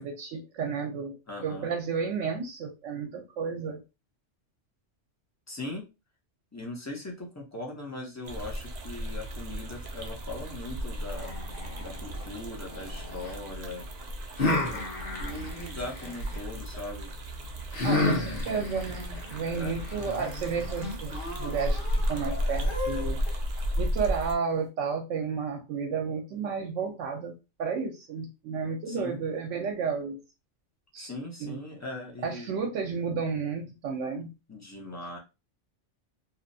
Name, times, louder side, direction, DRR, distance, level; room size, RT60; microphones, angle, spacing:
voice 1, 0.0-1.2 1.4-3.8 17.8-23.2 23.8-30.2 30.9-31.1 31.4-31.6 32.2-34.3, right 5 dB, 80° right, 2 dB, 0.9 m, -32 dB
voice 2, 1.3-1.7 5.5-5.8 6.5-11.3 11.8-13.9 14.4-17.1 17.9-18.4 19.5-19.7 28.9-29.2 31.0-32.5 34.5-35.2, left 2 dB, 25° left, -1 dB, 0.4 m, -40 dB
sound 1, 8.2-24.4, equal, 55° right, 0.5 m, -34 dB
sound 2, 11.1-13.3 14.4-16.4 17.7-23.3, left 2 dB, 50° left, 1.0 m, -33 dB
2.8 x 2.0 x 2.6 m, 0.27 s
omnidirectional pair, 1.3 m